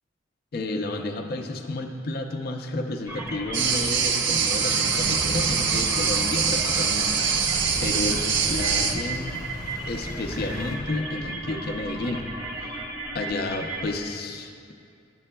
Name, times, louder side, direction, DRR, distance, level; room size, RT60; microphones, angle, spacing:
voice 1, 0.5-7.1 7.3-9.4 9.9-12.2 12.6-12.8 13.1-14.7, left 2 dB, 55° left, 4 dB, 0.5 m, -31 dB
sound 1, 3.1-14.0, right 1 dB, 15° right, 0.7 m, -35 dB
sound 2, 3.5-8.9, right 6 dB, 65° right, 0.5 m, -24 dB
sound 3, 4.9-10.8, left 1 dB, 20° left, 0.8 m, -38 dB
10.5 x 7.5 x 2.2 m, 2.4 s
head